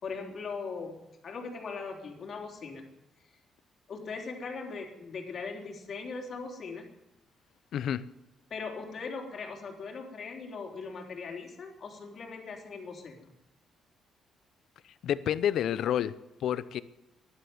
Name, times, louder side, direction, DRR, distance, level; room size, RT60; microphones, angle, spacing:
voice 1, 0.0-2.9 3.9-6.9 8.5-13.3, left 4 dB, 55° left, 1 dB, 3.5 m, -40 dB
voice 2, 7.7-8.1 15.0-16.2 16.4-16.8, left 10 dB, 70° left, 16 dB, 0.7 m, -29 dB
13.0 x 11.5 x 9.6 m, 0.94 s
cardioid pair, 90°, 0 cm